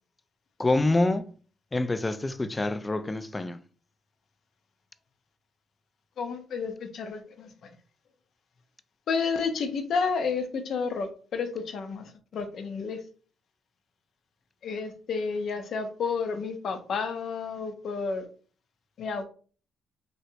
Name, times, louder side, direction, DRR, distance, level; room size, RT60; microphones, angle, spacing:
voice 1, 0.6-1.3 1.7-3.6, left 2 dB, 20° left, 0.3 m, -26 dB
voice 2, 6.2-7.7 9.1-13.0 14.6-18.2 19.0-19.2, left 5 dB, 65° left, 0.6 m, -31 dB
3.1 x 2.8 x 2.7 m
cardioid pair, 90°, 0 cm